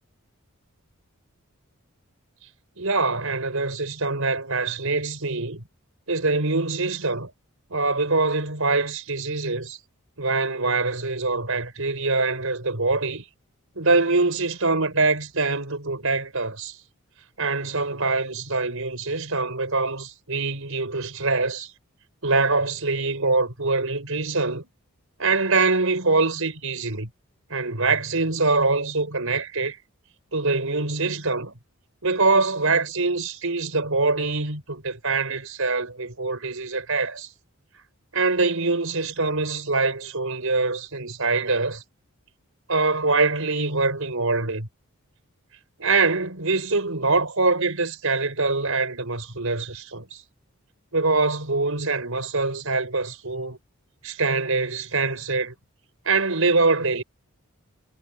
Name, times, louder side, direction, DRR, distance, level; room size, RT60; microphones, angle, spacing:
voice 1, 2.8-5.6 6.1-7.3 7.7-9.8 10.2-13.2 13.7-16.8 17.4-21.7 22.2-24.7 25.2-27.1 27.5-29.8 30.3-31.6 32.0-37.3 38.1-41.8 42.7-44.7 45.8-50.2 50.9-53.6 54.0-55.5 56.0-57.0, right 3 dB, 70° right, 4.9 m, -24 dB
head